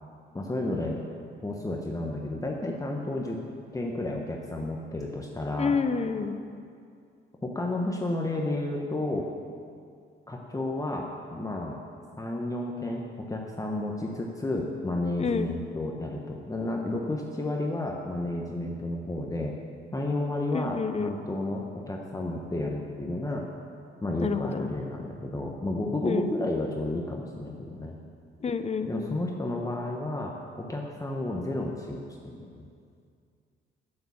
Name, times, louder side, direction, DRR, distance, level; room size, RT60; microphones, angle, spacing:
voice 1, 0.3-1.0 1.4-3.4 3.7-5.8 7.4-9.3 10.3-11.8 12.2-19.6 19.9-23.5 24.0-27.9 28.9-30.3 30.7-32.6, left 2 dB, 15° left, 0 dB, 1.1 m, -31 dB
voice 2, 5.6-6.3 15.2-15.5 20.5-21.1 24.2-24.4 26.0-26.2 28.4-29.1, left 5 dB, 35° left, 10 dB, 0.7 m, -28 dB
8.8 x 8.7 x 7.0 m, 2.3 s
cardioid pair, 90°, 20 cm